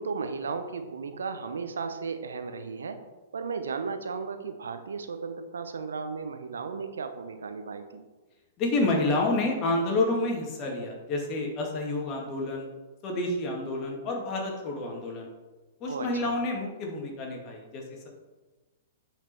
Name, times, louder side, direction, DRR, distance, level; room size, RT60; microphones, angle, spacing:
voice 1, 0.0-3.0 3.3-8.0 15.9-16.3, right 5 dB, 75° right, 8 dB, 0.8 m, -35 dB
voice 2, 8.6-12.7 13.0-15.3 15.8-18.1, left 2 dB, 35° left, 0 dB, 2.3 m, -29 dB
9.1 x 5.0 x 4.5 m, 1.2 s
figure-of-eight pair, 110°, 0 cm